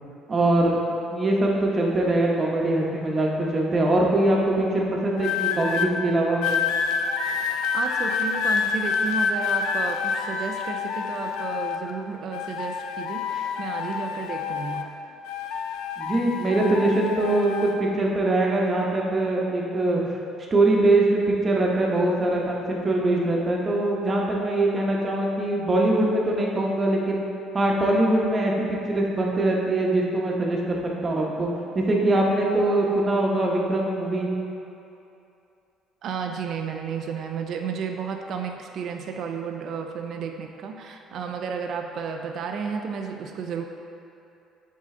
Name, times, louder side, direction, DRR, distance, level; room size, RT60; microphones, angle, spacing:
voice 1, 0.3-0.8 1.1-6.4 16.0-20.0 20.5-27.2 27.5-31.5 31.7-34.3, right 2 dB, 25° right, -2 dB, 0.9 m, -22 dB
sound 1, 5.2-5.9 6.4-11.9 12.3-14.9 15.2-17.8 18.5-18.8, left 5 dB, 85° left, 0.4 m, -27 dB
voice 2, 7.7-14.9 36.0-43.6, right 6 dB, 55° right, 4 dB, 0.4 m, -32 dB
7.4 x 3.8 x 3.7 m, 2.7 s
cardioid pair, 120°, 0 cm